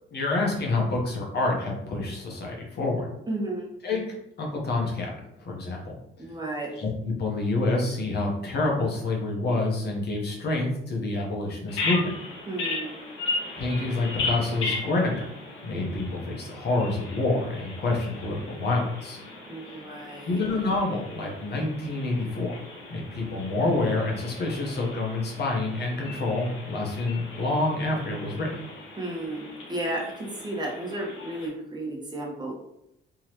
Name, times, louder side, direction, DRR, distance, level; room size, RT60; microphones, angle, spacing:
voice 1, 0.1-3.1 3.8-5.1 5.4-5.9 6.8-12.1 13.6-15.3 15.6-19.2 20.3-22.6 22.9-28.6, left 2 dB, 55° left, -1 dB, 1.1 m, -27 dB
voice 2, 3.3-3.7 6.2-6.7 12.5-12.9 19.5-20.4 29.0-32.5, right 1 dB, 20° right, -3 dB, 1.3 m, -33 dB
Bird vocalization bird call bird song, 11.7-31.5, left 3 dB, 85° left, 1.4 m, -37 dB
3.6 x 3.0 x 3.0 m, 0.82 s
cardioid pair, 90°, 20 cm